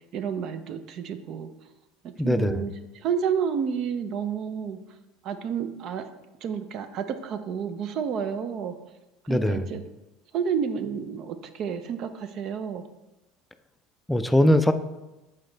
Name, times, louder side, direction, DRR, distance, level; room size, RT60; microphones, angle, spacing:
voice 1, 0.1-1.5 2.0-4.8 5.2-6.1 6.4-8.7 9.3-9.8 10.3-12.8, right 7 dB, 50° right, 10 dB, 0.5 m, -30 dB
voice 2, 2.2-2.6 9.3-9.7 14.1-14.7, left 1 dB, 5° left, 10 dB, 0.4 m, -21 dB
6.8 x 4.2 x 3.9 m, 1.0 s
supercardioid pair, 115°, 0 cm